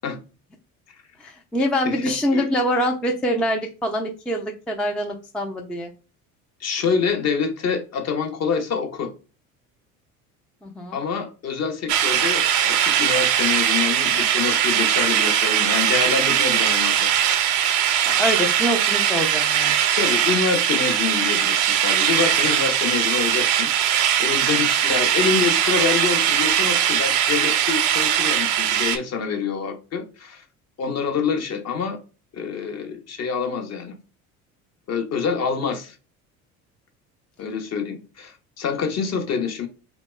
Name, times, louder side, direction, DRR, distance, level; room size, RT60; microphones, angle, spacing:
voice 1, 1.2-5.9 10.6-11.0 18.1-19.8, equal, ahead, 0.3 m, -25 dB
voice 2, 1.8-2.5 6.6-9.1 10.9-17.2 19.9-30.4 30.8-32.0 32.3-34.0 34.9-36.0 37.4-39.7, left 6 dB, 40° left, 0.7 m, -26 dB
sound 1, 11.9-29.0, right 10 dB, 65° right, 0.6 m, -20 dB
2.9 x 2.1 x 3.0 m
hypercardioid pair, 70°, 43 cm